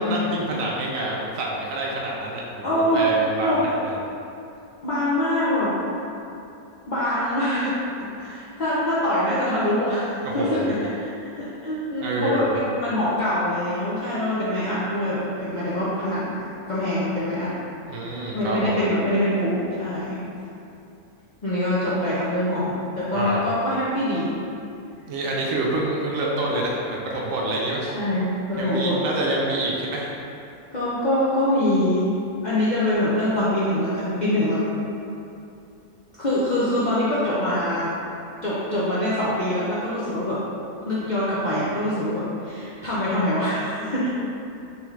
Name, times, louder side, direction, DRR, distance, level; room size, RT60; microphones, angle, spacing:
voice 1, 0.0-4.0 10.2-10.8 12.0-12.5 17.9-18.7 23.1-23.5 25.1-27.8 28.6-30.1, right 1 dB, 70° right, -3 dB, 0.9 m, -27 dB
voice 2, 2.6-3.0 3.4-3.6 4.8-5.8 6.9-17.5 18.3-20.2 21.4-24.4 27.9-29.0 30.7-32.1 32.4-34.6 36.2-37.9 38.4-40.4 40.9-44.1, left 1 dB, 55° left, -10 dB, 0.5 m, -24 dB
3.5 x 3.5 x 3.1 m, 2.7 s
omnidirectional pair, 1.6 m